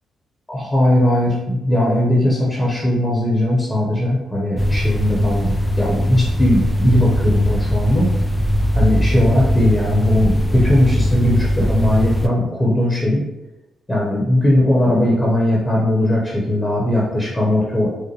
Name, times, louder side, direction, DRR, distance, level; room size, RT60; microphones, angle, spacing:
voice 1, 0.5-8.1 8.7-13.2 13.9-17.9, left 1 dB, 20° left, -4 dB, 1.0 m, -18 dB
sound 1, 4.6-12.3, equal, ahead, 0.4 m, -19 dB
4.7 x 2.1 x 3.1 m, 0.97 s
supercardioid pair, 50°, 0 cm